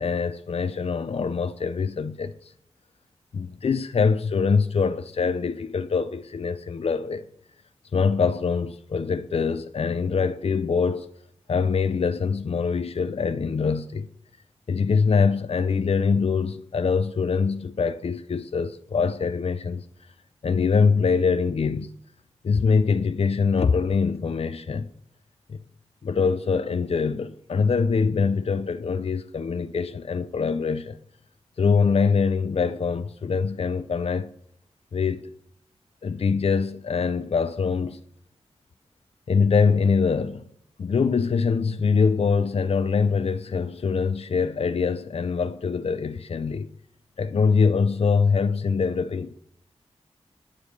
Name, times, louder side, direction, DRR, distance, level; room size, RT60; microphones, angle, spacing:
voice 1, 0.0-2.5 3.3-7.2 7.9-11.1 11.5-14.1 14.7-19.8 20.4-21.9 22.4-24.9 25.5-25.6 26.0-31.0 31.6-34.3 34.9-35.2 36.0-38.0 39.3-40.5 40.8-46.7 47.2-49.3, left 5 dB, 65° left, 0.6 m, -24 dB
9.8 x 7.2 x 6.6 m
wide cardioid pair, 70°, 11 cm